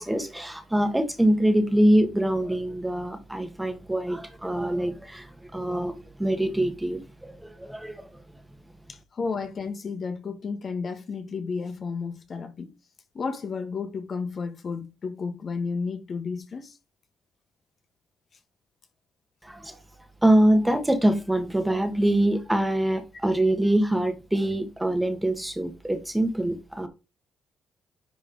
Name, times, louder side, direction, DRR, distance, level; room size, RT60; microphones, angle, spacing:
voice 1, 0.0-8.2 19.4-19.8 20.2-26.9, right 1 dB, 5° right, 1.3 m, -24 dB
voice 2, 8.9-12.7 13.1-16.8, left 5 dB, 45° left, 1.3 m, -32 dB
10.0 x 3.4 x 3.9 m
cardioid pair, 90°, 0 cm